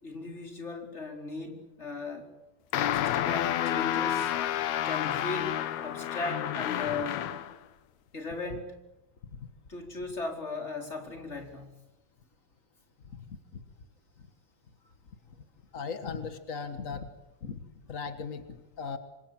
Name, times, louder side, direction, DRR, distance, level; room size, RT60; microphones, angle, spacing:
voice 1, 0.0-2.3 2.9-4.3 4.8-7.3 8.1-8.8 9.7-11.8, left 3 dB, 20° left, 3 dB, 4.5 m, -37 dB
sound 1, 2.7-7.6, left 11 dB, 65° left, 2.3 m, -30 dB
voice 2, 15.7-17.1 17.4-17.6 17.9-19.0, left 5 dB, 50° left, 9 dB, 0.9 m, -38 dB
27.5 x 24.5 x 8.9 m, 0.98 s
omnidirectional pair, 3.8 m